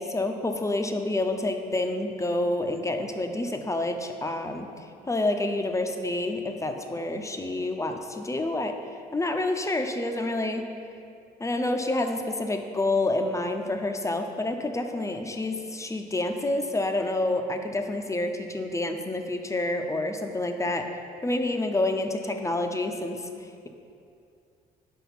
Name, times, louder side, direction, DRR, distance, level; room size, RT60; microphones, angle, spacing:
voice 1, 0.0-4.7 5.1-8.7 9.1-10.6 11.4-20.9 21.2-23.3, left 2 dB, 15° left, 5 dB, 0.6 m, -28 dB
4.9 x 4.2 x 5.8 m, 2.5 s
supercardioid pair, 55°, 19 cm